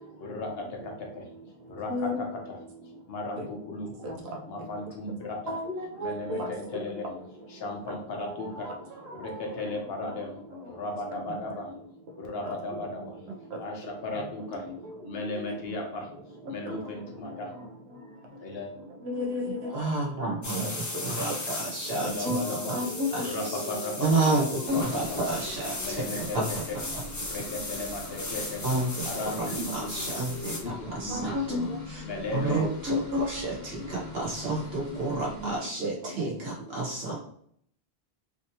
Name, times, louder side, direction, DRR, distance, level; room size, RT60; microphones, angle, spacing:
voice 1, 0.0-1.3 1.7-2.6 3.1-4.1 4.5-5.6 6.0-7.1 7.5-8.8 9.1-10.4 10.6-11.7 12.2-13.2 13.6-14.6 15.0-16.1 16.5-17.5 18.4-18.7 22.0-22.8 23.2-23.9 24.7-25.4 25.8-26.8 27.2-28.6 29.0-30.1 30.5-31.6 32.0-32.7, left 2 dB, 70° left, 0 dB, 1.1 m, -36 dB
voice 2, 1.9-2.2 3.4-3.5 4.0-4.2 5.5-6.5 8.5-9.4 12.4-12.5 13.5-13.6 16.7-16.8 19.1-19.7 22.0-22.4 22.7-23.3 24.7-24.8 31.1-31.6 32.9-33.3 35.4-35.5, left 3 dB, 90° right, 1 dB, 0.9 m, -31 dB
voice 3, 19.4-22.4 23.1-23.6 24.0-26.6 28.6-32.0 32.3-37.1, right 2 dB, 70° right, -4 dB, 1.5 m, -31 dB
sound 1, 20.4-30.6, left 2 dB, 30° left, 0.4 m, -37 dB
sound 2, 24.7-35.6, left 3 dB, 45° left, 1.1 m, -45 dB
3.4 x 2.7 x 2.8 m, 0.64 s
omnidirectional pair, 1.1 m